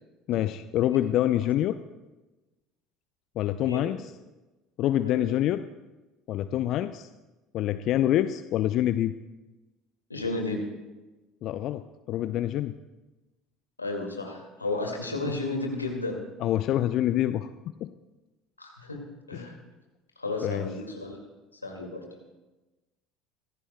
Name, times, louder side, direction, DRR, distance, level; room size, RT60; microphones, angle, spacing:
voice 1, 0.3-1.8 3.4-4.1 4.8-5.6 6.3-7.1 7.5-9.1 11.4-12.7 16.4-17.5 17.8-17.9 19.3-19.5 20.4-20.7, left 12 dB, 50° left, 12 dB, 0.4 m, -26 dB
voice 2, 3.6-3.9 5.0-5.3 10.1-10.6 13.8-16.2 18.6-19.0 19.3-19.5 20.2-21.2 21.6-22.0, left 2 dB, 90° left, 1 dB, 2.1 m, -32 dB
23.5 x 15.5 x 2.3 m, 1.1 s
figure-of-eight pair, 60°, 0 cm